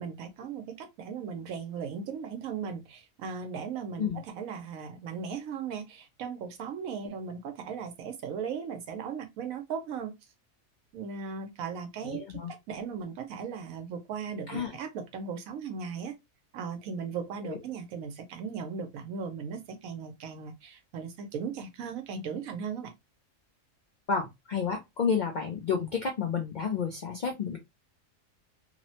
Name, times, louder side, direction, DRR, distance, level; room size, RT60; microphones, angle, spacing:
voice 1, 0.0-10.1 10.9-12.2 12.5-16.1 16.5-22.9, right 6 dB, 85° right, 1.1 m, -37 dB
voice 2, 12.0-12.5 14.5-14.8 17.4-17.6 24.1-27.6, left 6 dB, 70° left, 0.4 m, -31 dB
3.0 x 2.1 x 2.6 m
omnidirectional pair, 1.4 m